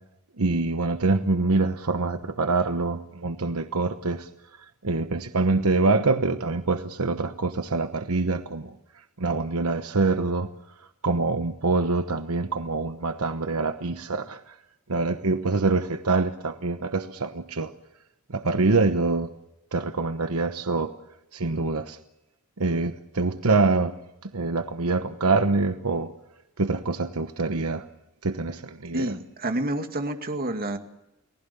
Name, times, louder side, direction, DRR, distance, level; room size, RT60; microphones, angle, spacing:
voice 1, 0.4-4.3 4.8-8.7 9.2-10.5 11.0-14.5 14.9-17.7 18.3-19.3 19.7-20.9 21.3-22.0 22.6-23.9 24.2-26.1 26.6-27.9 28.2-29.1, right 3 dB, 75° right, 8 dB, 1.1 m, -25 dB
voice 2, 28.9-30.8, right 1 dB, 45° right, 5 dB, 2.2 m, -29 dB
29.5 x 19.5 x 6.9 m, 0.92 s
head